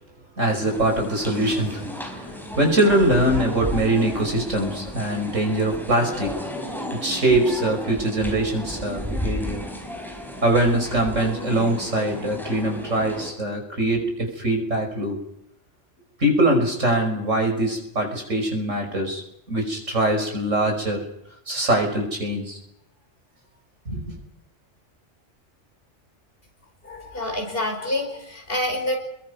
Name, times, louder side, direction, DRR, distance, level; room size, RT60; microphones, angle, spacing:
voice 1, 0.4-6.5 6.9-9.6 10.4-15.2 16.2-19.2 19.5-21.1 21.5-22.6 23.9-24.1, right 1 dB, 85° right, 3 dB, 5.9 m, -23 dB
sound 1, 0.7-13.3, equal, ahead, 4.5 m, -33 dB
voice 2, 26.8-29.0, left 1 dB, 50° left, 2 dB, 5.6 m, -27 dB
29.5 x 21.5 x 5.4 m, 0.78 s
omnidirectional pair, 1.3 m